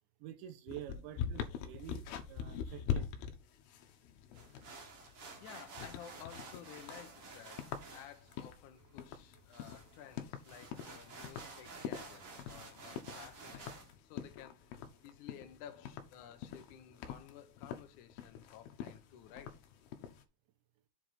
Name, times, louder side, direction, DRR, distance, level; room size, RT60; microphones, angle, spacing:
voice 1, 0.2-2.0 2.3-3.1, right 12 dB, 90° right, 3.4 m, -48 dB
sound 1, 0.7-20.2, left 8 dB, 75° left, 2.6 m, -43 dB
sound 2, 4.3-13.9, right 4 dB, 45° right, 1.9 m, -52 dB
voice 2, 5.4-14.6 15.0-19.6, left 10 dB, 90° left, 1.7 m, -54 dB
7.6 x 4.8 x 4.4 m
omnidirectional pair, 5.1 m